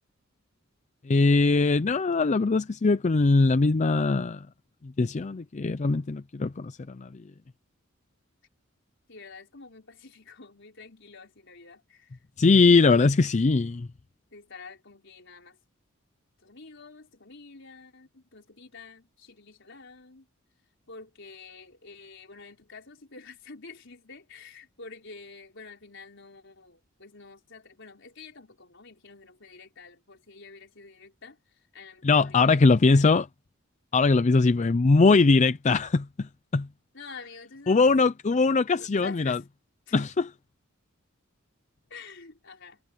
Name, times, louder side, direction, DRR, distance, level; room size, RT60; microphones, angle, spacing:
voice 1, 1.1-4.4 4.8-7.1 12.4-13.9 32.0-33.3 33.9-36.7 37.7-39.4 39.9-40.3, left 3 dB, 35° left, 0.5 m, -21 dB
voice 2, 9.1-13.1 14.3-15.6 16.4-20.3 20.9-33.1 36.9-37.8 38.8-39.4 39.9-40.1 41.9-42.8, left 4 dB, 65° left, 4.8 m, -48 dB
head